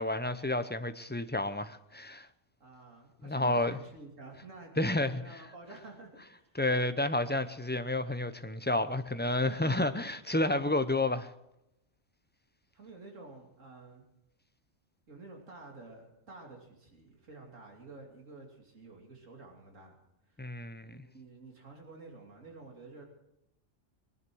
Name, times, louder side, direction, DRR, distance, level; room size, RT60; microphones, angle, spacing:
voice 1, 0.0-2.3 3.2-3.8 4.8-5.2 6.5-11.3 20.4-21.0, left 2 dB, 15° left, 0.4 m, -30 dB
voice 2, 2.6-4.7 5.0-6.6 9.5-9.9 12.7-14.0 15.1-19.9 20.3-20.4 20.8-23.1, right 3 dB, 80° right, 3.1 m, -50 dB
21.0 x 11.0 x 6.2 m
omnidirectional pair, 1.3 m